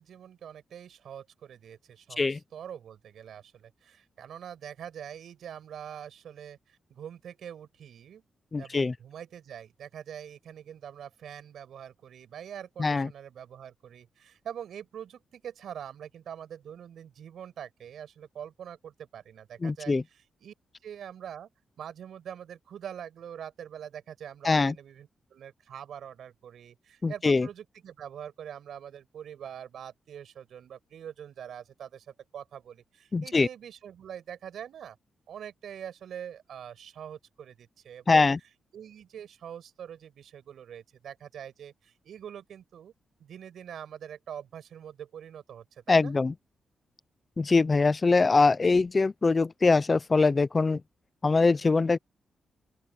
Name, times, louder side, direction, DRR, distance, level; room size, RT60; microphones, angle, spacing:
voice 1, 0.0-8.2 8.6-20.5 20.8-21.5 21.8-35.0 35.3-38.3 38.7-42.9 43.2-46.1, right 9 dB, 75° right, 6.4 m, -44 dB
voice 2, 8.5-8.9 12.8-13.1 19.6-20.0 24.4-24.7 27.0-27.5 33.1-33.5 38.1-38.4 45.9-46.3 47.4-50.8 51.2-52.0, left 3 dB, 25° left, 0.5 m, -23 dB
open air
wide cardioid pair, 155°, 0 cm